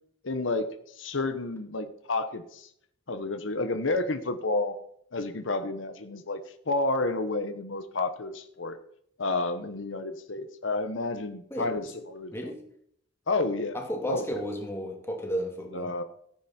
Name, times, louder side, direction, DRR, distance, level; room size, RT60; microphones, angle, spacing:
voice 1, 0.2-0.7 1.0-2.7 3.1-4.8 5.1-6.4 6.7-8.8 9.2-12.5 13.3-13.8 14.1-14.2 15.7-16.0, left 2 dB, 85° left, 8 dB, 1.1 m, -30 dB
voice 2, 12.3-12.6 13.7-15.9, equal, 15° left, 1 dB, 2.4 m, -33 dB
14.0 x 9.7 x 4.4 m, 0.68 s
head